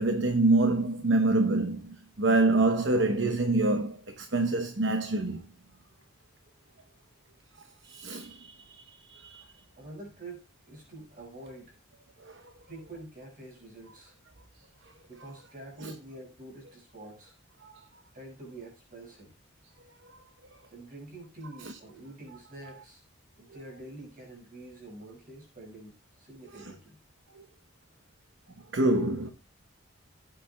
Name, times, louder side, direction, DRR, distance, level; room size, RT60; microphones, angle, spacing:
voice 1, 0.0-5.4 7.8-9.5 12.2-12.4 15.8-15.9 17.6-17.7 21.6-21.8 26.5-26.7 28.7-29.3, right 2 dB, 60° right, 0.9 m, -26 dB
voice 2, 9.8-11.8 12.7-14.2 15.1-17.4 18.1-19.3 20.7-23.0 23.4-27.0, right 2 dB, 40° right, 5.6 m, -46 dB
16.0 x 8.8 x 2.3 m
head